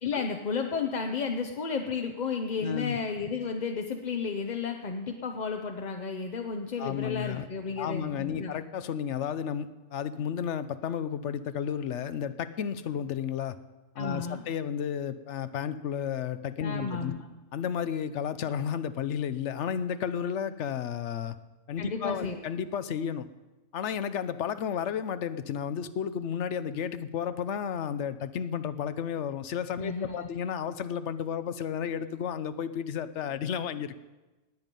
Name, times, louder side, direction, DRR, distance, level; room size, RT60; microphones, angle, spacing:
voice 1, 0.0-8.6 14.0-14.4 16.6-17.2 21.8-22.5 29.8-30.3, left 5 dB, 45° left, 4 dB, 0.7 m, -33 dB
voice 2, 2.6-3.0 6.8-7.5 7.8-13.6 14.0-17.1 17.5-21.3 21.7-23.3 23.7-34.0, left 8 dB, 70° left, 13 dB, 1.0 m, -32 dB
18.5 x 9.0 x 5.3 m, 1.1 s
omnidirectional pair, 1.3 m